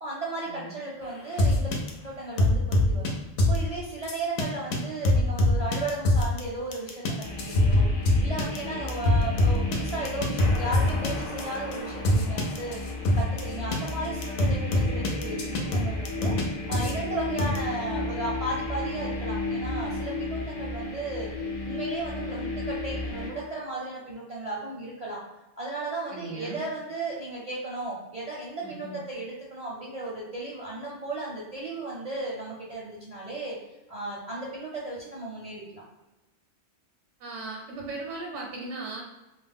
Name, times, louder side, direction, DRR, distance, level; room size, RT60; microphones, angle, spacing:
voice 1, 0.0-1.7 2.0-3.1 3.5-7.9 8.2-12.8 13.1-21.3 21.6-25.2 25.6-33.6 33.9-35.8, right 2 dB, 45° right, -5 dB, 0.5 m, -35 dB
sound 1, 1.4-1.9 2.4-3.1 3.4-3.6 4.1-4.4 4.7-4.8 5.0-6.4 6.7-13.4 13.7-13.9 14.2-16.4 16.7-16.9 17.4-17.6, left 1 dB, 80° left, 0.9 m, -23 dB
sound 2, 7.2-23.3, left 2 dB, 40° left, 0.6 m, -34 dB
voice 2, 26.1-26.6 28.6-29.0 37.2-39.0, right 2 dB, 80° right, -1 dB, 0.9 m, -37 dB
2.4 x 2.0 x 3.4 m, 1.0 s
omnidirectional pair, 1.2 m